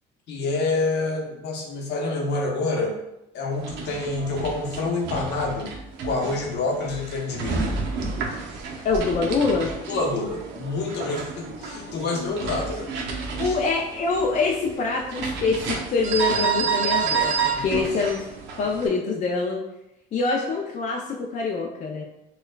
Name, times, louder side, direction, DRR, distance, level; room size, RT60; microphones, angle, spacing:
voice 1, 0.3-2.9 3.3-5.7 6.0-7.7 9.9-12.9 13.4-13.5 17.5-17.8, left 3 dB, 60° left, 0 dB, 0.8 m, -27 dB
sound 1, 3.5-18.9, right 5 dB, 65° right, 0.6 m, -30 dB
voice 2, 8.8-9.7 13.4-18.2 18.6-19.6 20.1-22.0, left 4 dB, 40° left, -1 dB, 0.4 m, -25 dB
4.3 x 2.3 x 2.2 m, 0.88 s
supercardioid pair, 90°, 19 cm